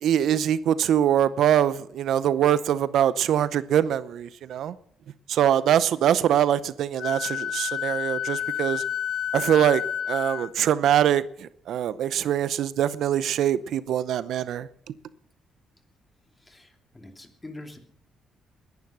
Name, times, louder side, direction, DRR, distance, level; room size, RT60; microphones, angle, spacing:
voice 1, 0.0-4.8 5.3-8.8 9.3-14.9, right 10 dB, 75° right, 0.7 m, -23 dB
Wind instrument woodwind instrument, 7.0-10.5, left 9 dB, 65° left, 0.6 m, -30 dB
voice 2, 16.5-17.8, left 2 dB, 15° left, 2.8 m, -44 dB
20.5 x 11.0 x 6.1 m
cardioid pair, 90°, 0 cm